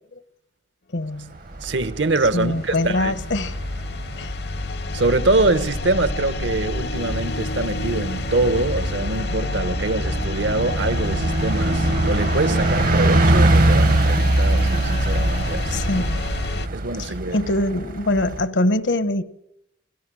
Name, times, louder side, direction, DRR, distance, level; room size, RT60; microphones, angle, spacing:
voice 1, 0.9-1.3 2.3-3.6 4.2-4.3 15.7-16.2 17.0-19.2, left 1 dB, 85° left, 1.2 m, -23 dB
Bus, 1.4-18.5, right 2 dB, 50° right, 0.8 m, -24 dB
voice 2, 1.6-3.1 4.9-16.0 16.7-17.5, right 2 dB, 80° right, 1.2 m, -24 dB
sound 1, 1.7-16.7, left 3 dB, 60° left, 0.7 m, -29 dB
26.0 x 18.0 x 6.3 m
head